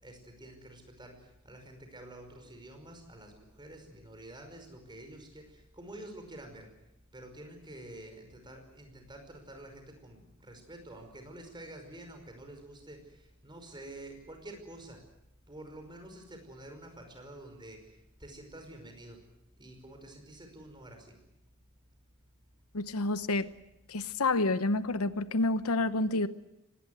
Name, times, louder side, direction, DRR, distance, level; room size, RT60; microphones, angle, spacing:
voice 1, 0.0-6.7 7.1-15.0 15.5-19.2 19.5-21.1, right 1 dB, 20° right, 5 dB, 5.4 m, -48 dB
voice 2, 22.7-23.5 23.9-26.3, left 2 dB, 80° left, 13 dB, 1.0 m, -29 dB
24.5 x 20.0 x 8.0 m, 0.86 s
head